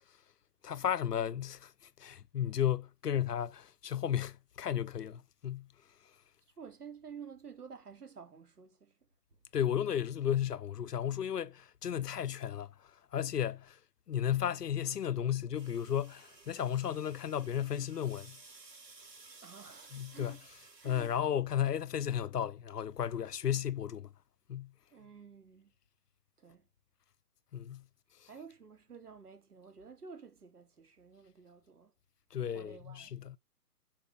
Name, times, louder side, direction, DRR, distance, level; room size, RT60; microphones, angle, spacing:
voice 1, 0.6-1.7 2.0-5.7 9.5-12.7 13.1-13.8 14.1-18.4 19.9-20.4 20.8-24.1 24.5-24.7 27.5-27.8 32.3-33.4, left 9 dB, 75° left, 0.8 m, -34 dB
voice 2, 6.6-8.9 19.4-20.4 20.8-21.1 24.9-25.7 26.4-26.6 28.3-31.9 32.5-33.1, right 6 dB, 70° right, 3.3 m, -51 dB
sound 1, 15.6-21.3, right 3 dB, 85° right, 3.4 m, -56 dB
8.6 x 5.4 x 5.2 m
hypercardioid pair, 155°, 48 cm